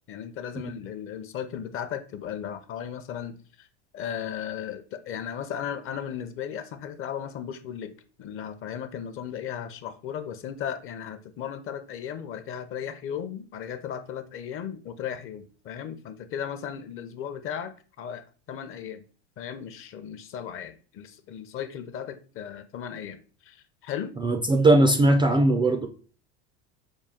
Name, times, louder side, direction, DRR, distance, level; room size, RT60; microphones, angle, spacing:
voice 1, 0.1-3.7 3.9-7.9 8.2-19.0 19.4-24.2, left 8 dB, 40° left, 0.6 m, -36 dB
voice 2, 24.2-25.9, right 2 dB, 15° right, 0.3 m, -19 dB
5.5 x 2.3 x 3.6 m
hypercardioid pair, 95°, 33 cm